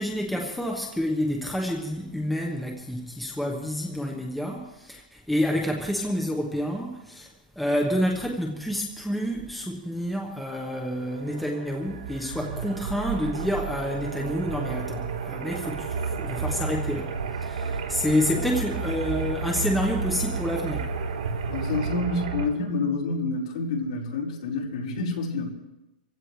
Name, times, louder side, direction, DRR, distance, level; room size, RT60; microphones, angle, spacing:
voice 1, 0.0-7.3 7.5-20.9, equal, ahead, 0 dB, 1.2 m, -28 dB
sound 1, 10.9-22.5, right 5 dB, 60° right, 3.7 m, -32 dB
voice 2, 21.5-25.5, left 3 dB, 50° left, -3 dB, 5.0 m, -28 dB
26.0 x 16.0 x 3.4 m, 0.98 s
hypercardioid pair, 170°, 5 cm